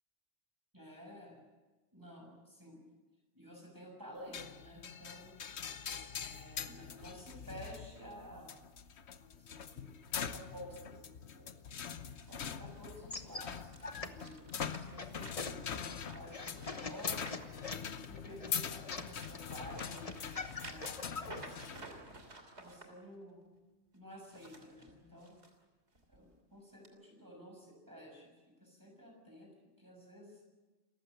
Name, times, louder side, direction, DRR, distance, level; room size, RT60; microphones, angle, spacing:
voice 1, 0.7-1.4 1.9-2.8 3.3-5.8 6.1-8.6 9.2-11.5 12.3-17.5 17.9-22.0 22.6-23.5 23.9-25.4 26.1-28.3 28.6-29.5 29.8-30.4, equal, 15° right, 0 dB, 6.8 m, -52 dB
sound 1, 4.3-21.8, left 7 dB, 80° left, 1.2 m, -43 dB
sound 2, 12.2-18.3 18.8-22.8 24.1-25.5 25.9-26.2 26.8-26.9, right 2 dB, 85° right, 3.3 m, -54 dB
sound 3, 12.9-21.4, left 3 dB, 35° left, 1.2 m, -45 dB
28.5 x 15.5 x 8.0 m, 1.2 s
omnidirectional pair, 1.1 m